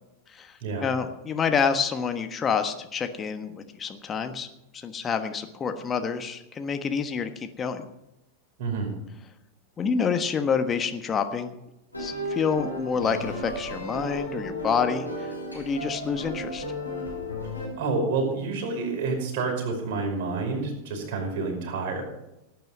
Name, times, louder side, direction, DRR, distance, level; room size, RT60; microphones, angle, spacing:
voice 1, 0.3-4.5 4.7-7.9 9.8-11.5 12.0-16.6, left 6 dB, 20° left, 7 dB, 1.3 m, -28 dB
voice 2, 8.6-8.9 17.8-22.0, right 3 dB, 50° right, 1 dB, 5.3 m, -28 dB
sound 1, 11.9-17.7, left 1 dB, 85° left, 6.4 m, -34 dB
17.5 x 9.2 x 5.4 m, 0.90 s
figure-of-eight pair, 90°, 0 cm